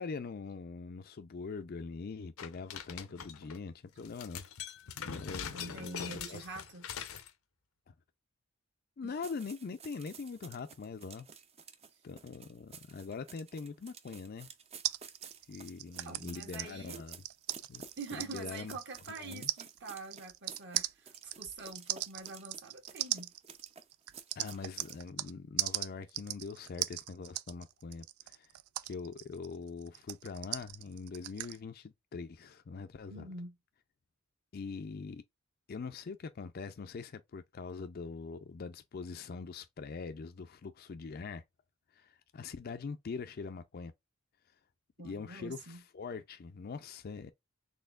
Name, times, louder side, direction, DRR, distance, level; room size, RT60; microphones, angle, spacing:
voice 1, 0.0-4.4 5.0-6.5 7.9-8.0 9.0-11.3 12.0-14.5 15.5-17.2 17.7-17.8 18.2-18.8 19.2-19.5 24.4-28.5 28.8-33.3 34.5-35.2 35.7-41.4 41.9-43.9 45.0-47.3, left 4 dB, 45° left, 0.4 m, -43 dB
sound 1, 2.4-3.6 4.0-7.3, left 7 dB, 80° left, 0.7 m, -43 dB
voice 2, 5.5-6.9 9.0-9.2 16.0-17.0 18.0-23.3 33.1-33.6 45.0-45.8, right 3 dB, 55° right, 1.4 m, -45 dB
sound 2, 9.2-25.0, right 6 dB, 30° right, 0.5 m, -53 dB
sound 3, 14.8-25.3 25.6-31.6, right 15 dB, 85° right, 0.4 m, -39 dB
4.2 x 3.2 x 2.3 m
head